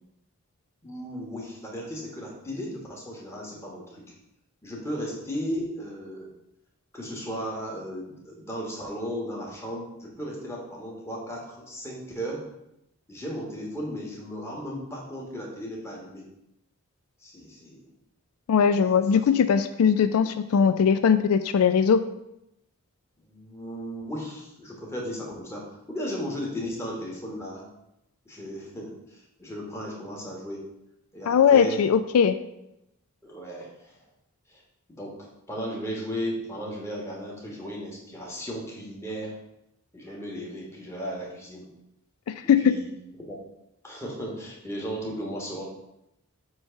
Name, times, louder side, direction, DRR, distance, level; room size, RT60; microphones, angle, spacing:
voice 1, 0.8-4.1 4.6-6.3 6.9-12.5 13.1-16.3 17.2-17.9 19.1-19.3 23.2-27.7 28.2-30.7 31.1-31.8 33.2-34.0 34.5-34.6 34.9-35.2 35.5-39.4 39.9-41.7 42.6-42.9 43.2-43.4 43.8-45.6, equal, 10° left, -3 dB, 1.4 m, -35 dB
voice 2, 18.5-22.0 31.3-32.4 42.3-42.7, left 7 dB, 80° left, 12 dB, 0.4 m, -20 dB
7.5 x 3.0 x 5.6 m, 0.84 s
head